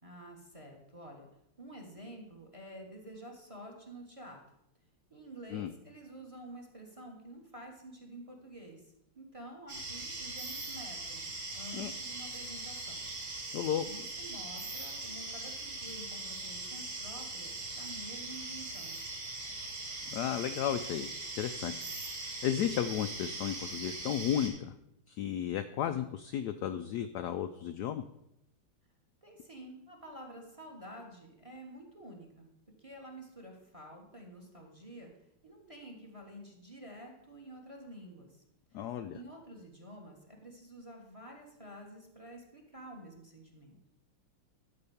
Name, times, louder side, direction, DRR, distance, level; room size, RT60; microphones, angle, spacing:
voice 1, 0.0-1.3 1.6-4.4 5.1-13.0 13.8-19.0 29.2-35.1 35.4-38.4 38.7-38.9 39.1-43.8, right 1 dB, 20° right, 2 dB, 1.2 m, -49 dB
sound 1, 9.7-24.5, right 2 dB, 55° right, 2.7 m, -41 dB
voice 2, 13.5-13.8 20.1-21.1 21.4-21.9 22.4-24.7 25.1-28.0 38.7-39.2, left 10 dB, 80° left, 9 dB, 0.9 m, -33 dB
12.0 x 4.2 x 7.0 m, 0.80 s
omnidirectional pair, 2.3 m